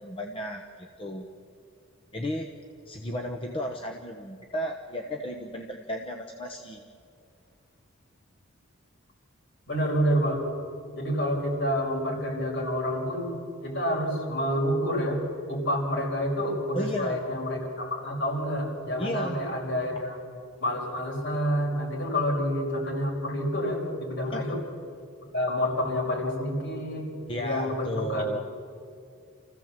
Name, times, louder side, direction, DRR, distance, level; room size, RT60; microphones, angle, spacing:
voice 1, 0.0-1.3 2.1-2.5 2.9-6.8 16.7-17.2 19.0-20.0 24.3-24.5 27.3-28.4, equal, 25° left, 3 dB, 1.0 m, -34 dB
voice 2, 9.7-10.5 10.9-13.3 13.6-15.2 15.5-24.6 25.3-27.1 27.3-28.2, equal, 55° left, -1 dB, 5.3 m, -28 dB
28.0 x 15.0 x 7.5 m, 2.4 s
head